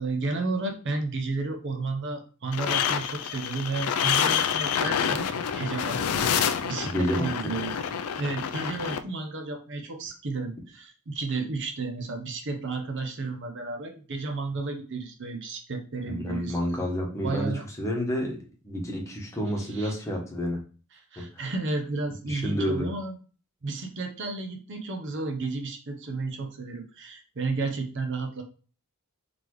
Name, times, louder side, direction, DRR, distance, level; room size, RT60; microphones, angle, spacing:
voice 1, 0.0-5.3 5.5-7.7 8.2-16.6 17.2-17.6 19.7-19.9 21.1-23.1 23.6-28.4, right 3 dB, 55° right, 4 dB, 0.8 m, -32 dB
sound 1, 2.5-9.0, left 8 dB, 70° left, 0.4 m, -27 dB
voice 2, 6.8-7.5 16.1-20.6 21.2-21.5 22.3-22.9, equal, 15° left, -1 dB, 1.1 m, -30 dB
4.1 x 3.4 x 3.1 m, 0.37 s
head